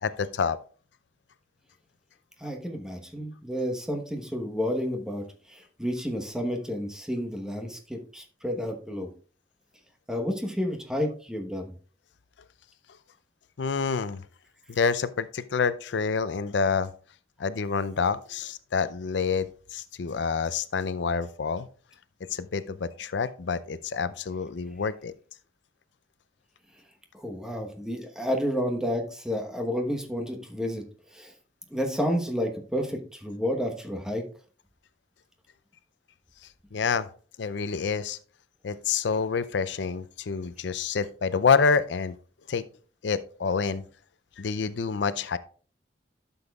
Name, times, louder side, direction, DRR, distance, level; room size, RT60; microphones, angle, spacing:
voice 1, 0.0-0.6 13.6-14.2 14.7-16.9 17.4-21.7 22.3-25.1 36.7-37.1 37.4-38.2 38.6-42.1 42.5-42.6 43.0-43.8 44.4-45.4, left 5 dB, 90° left, 14 dB, 0.5 m, -27 dB
voice 2, 2.4-9.1 10.1-11.7 27.1-30.8 31.1-31.3 31.7-34.2, equal, 5° right, 3 dB, 1.1 m, -30 dB
12.0 x 7.0 x 2.3 m, 0.41 s
head